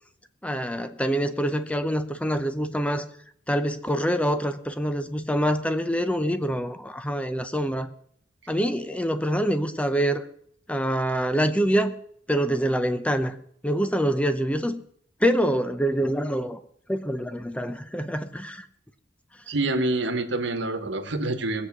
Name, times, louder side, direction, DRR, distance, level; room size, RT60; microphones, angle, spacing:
voice 1, 0.4-3.1 3.5-7.9 8.5-10.2 10.7-11.9 12.3-13.4 13.6-14.8 15.2-16.6 16.9-18.7, equal, 5° left, 10 dB, 0.7 m, -25 dB
voice 2, 19.5-21.7, right 2 dB, 60° right, 8 dB, 1.4 m, -26 dB
19.5 x 8.1 x 6.1 m, 0.65 s
head